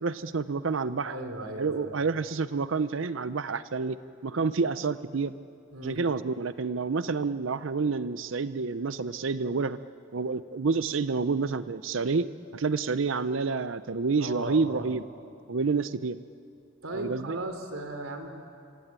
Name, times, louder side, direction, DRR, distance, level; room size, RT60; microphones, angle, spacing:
voice 1, 0.0-1.2 1.6-5.3 5.8-9.8 10.1-12.3 12.5-15.0 15.5-16.2 16.9-17.4, right 4 dB, 65° right, 13 dB, 0.6 m, -29 dB
voice 2, 1.0-1.9 5.7-6.0 14.2-14.9 16.8-18.3, right 1 dB, 90° right, 6 dB, 3.5 m, -37 dB
26.5 x 23.5 x 8.9 m, 2.6 s
head